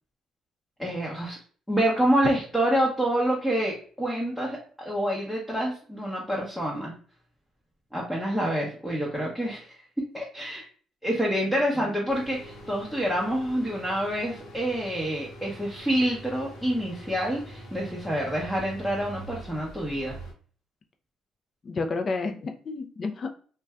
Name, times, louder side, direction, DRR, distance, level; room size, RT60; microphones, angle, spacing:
voice 1, 0.8-1.4 1.7-6.9 7.9-10.6 11.0-20.2, equal, 5° left, -4 dB, 0.8 m, -27 dB
sound 1, 12.1-20.3, equal, 70° left, 0.8 m, -44 dB
voice 2, 21.6-23.3, left 3 dB, 40° left, 6 dB, 0.5 m, -31 dB
2.5 x 2.2 x 3.3 m, 0.43 s
cardioid pair, 90°, 0 cm